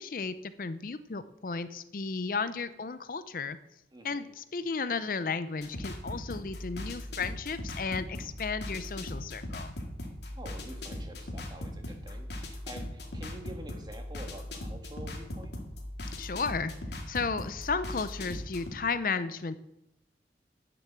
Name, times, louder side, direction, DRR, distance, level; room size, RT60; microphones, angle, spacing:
voice 1, 0.0-3.6 4.0-9.7 16.2-16.7 17.1-19.5, left 4 dB, 50° left, 13 dB, 0.5 m, -34 dB
voice 2, 3.9-4.3 10.3-15.5, right 1 dB, 25° right, 4 dB, 1.5 m, -47 dB
sound 1, 5.6-18.7, left 1 dB, 80° left, 2.1 m, -39 dB
9.9 x 6.9 x 7.5 m, 0.89 s
head